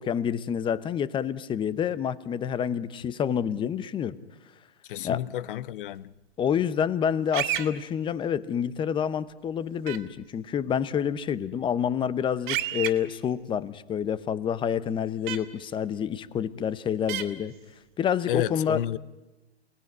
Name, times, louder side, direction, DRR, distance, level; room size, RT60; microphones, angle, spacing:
voice 1, 0.0-4.2 5.0-5.2 6.4-17.5 18.0-18.8, left 8 dB, 15° left, 0.8 m, -28 dB
voice 2, 4.9-6.1 18.3-19.0, left 12 dB, 55° left, 0.9 m, -30 dB
sound 1, 7.3-7.7 9.9-10.0 12.5-12.9 15.3-15.4 17.1-17.2, right 13 dB, 50° right, 2.4 m, -29 dB
28.0 x 19.0 x 9.6 m
hypercardioid pair, 130°, 33 cm